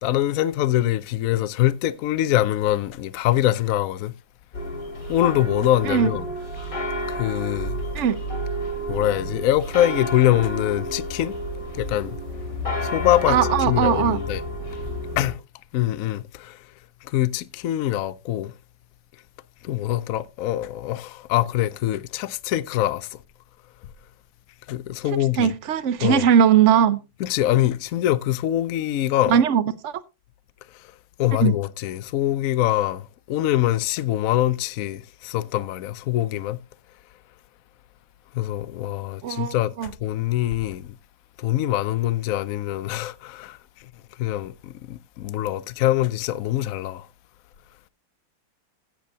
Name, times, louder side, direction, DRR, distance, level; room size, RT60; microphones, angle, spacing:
voice 1, 0.0-4.1 5.1-6.3 7.1-7.8 8.9-11.4 11.8-12.2 12.8-13.4 13.7-14.4 15.2-15.4 15.7-16.6 17.1-18.5 19.6-23.1 24.7-25.5 26.0-26.2 27.2-29.4 31.2-36.6 38.3-39.7 40.0-40.9 41.4-43.6 44.2-47.0, left 13 dB, 80° left, 0.7 m, -23 dB
sound 1, 4.5-15.3, equal, 40° left, 3.1 m, -30 dB
voice 2, 13.3-14.2 25.4-27.0 29.3-30.0 31.4-31.5 39.2-39.9, right 8 dB, 80° right, 0.6 m, -19 dB
16.0 x 7.5 x 2.7 m
omnidirectional pair, 2.2 m